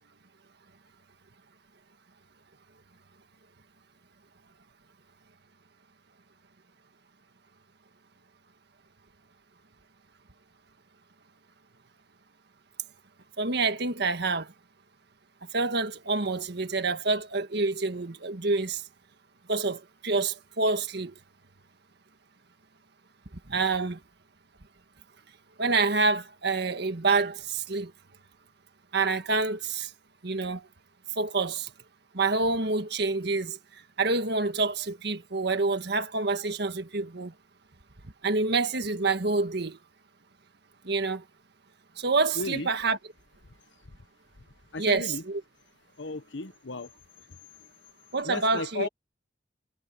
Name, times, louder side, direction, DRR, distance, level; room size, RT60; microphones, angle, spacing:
voice 1, 13.4-14.5 15.5-18.8 19.5-21.1 23.5-24.0 25.6-27.9 28.9-29.9 30.2-30.7 31.2-31.7 32.1-33.6 34.0-37.3 38.2-39.8 40.8-41.2 42.0-43.0 44.8-45.4 48.1-48.9, right 3 dB, 65° right, 1.7 m, -27 dB
voice 2, 42.4-42.7 43.9-44.0 44.7-45.2 46.0-46.9 48.2-48.9, left 3 dB, 85° left, 1.2 m, -34 dB
head